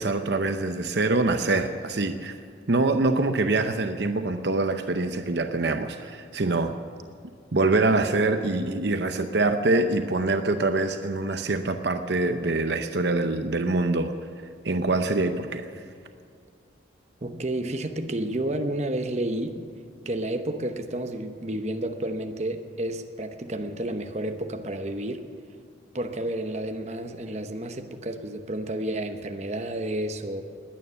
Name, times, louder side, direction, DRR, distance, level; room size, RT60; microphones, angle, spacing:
voice 1, 0.0-2.4 2.7-6.7 7.5-14.1 14.6-15.7, right 2 dB, 60° right, 7 dB, 0.7 m, -24 dB
voice 2, 17.2-19.6 20.0-25.3 25.9-30.4, right 1 dB, 35° right, 6 dB, 0.9 m, -31 dB
20.5 x 9.5 x 7.0 m, 2.3 s
head